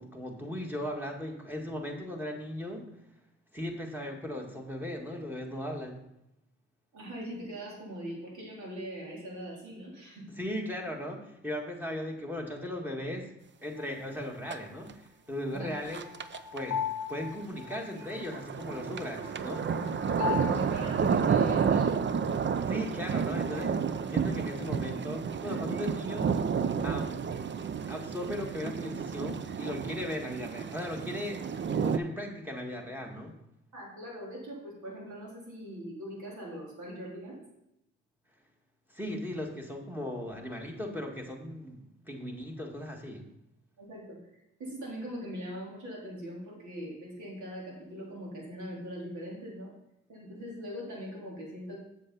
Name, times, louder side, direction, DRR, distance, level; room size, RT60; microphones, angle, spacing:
voice 1, 0.0-2.9 3.5-6.0 10.3-13.3 13.6-16.1 16.5-19.7 22.6-23.8 24.1-26.3 26.8-27.2 27.9-33.4 38.9-43.3, left 1 dB, 5° right, 1 dB, 1.9 m, -37 dB
voice 2, 6.9-10.3 15.5-15.7 20.2-22.1 33.7-37.4 43.8-44.2 44.6-49.7 50.1-51.8, equal, 70° right, -3 dB, 3.6 m, -41 dB
sound 1, 13.8-13.9 15.7-20.5, left 8 dB, 55° left, 0.9 m, -37 dB
sound 2, 14.5-14.6 14.9-15.0 15.9-16.6 17.8-32.0, right 6 dB, 35° right, 0.6 m, -31 dB
7.4 x 7.4 x 4.0 m, 0.84 s
supercardioid pair, 65°, 31 cm